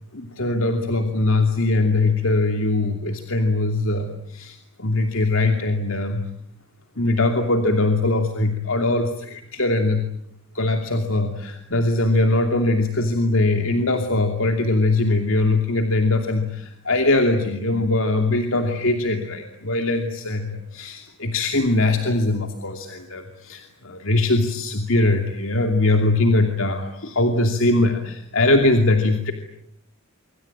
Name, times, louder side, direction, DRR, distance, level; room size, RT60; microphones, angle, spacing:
voice 1, 0.1-6.3 7.0-10.0 10.5-29.3, left 2 dB, 70° left, 5 dB, 2.7 m, -21 dB
26.0 x 25.0 x 8.8 m, 0.69 s
head